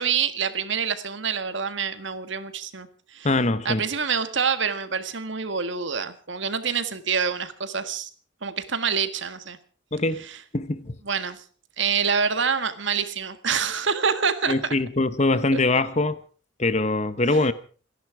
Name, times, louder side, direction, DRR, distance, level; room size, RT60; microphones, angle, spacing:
voice 1, 0.0-2.9 3.1-3.3 3.7-8.1 8.4-9.6 11.1-11.4 11.8-14.5, right 6 dB, 65° right, 1.7 m, -26 dB
voice 2, 3.2-3.8 9.9-10.2 10.5-11.0 14.5-16.2 16.6-17.5, left 2 dB, 35° left, 0.9 m, -23 dB
27.0 x 11.0 x 4.9 m
head